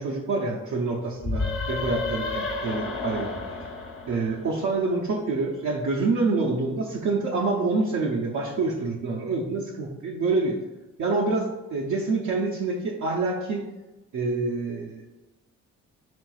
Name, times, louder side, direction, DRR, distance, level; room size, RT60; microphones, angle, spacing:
voice 1, 0.0-3.3 4.1-10.6 11.0-13.6 14.1-15.1, right 3 dB, 55° right, -3 dB, 0.7 m, -27 dB
sound 1, 1.2-4.8, left 3 dB, 40° left, 0.9 m, -31 dB
4.3 x 3.8 x 2.4 m, 1.1 s
supercardioid pair, 60°, 35 cm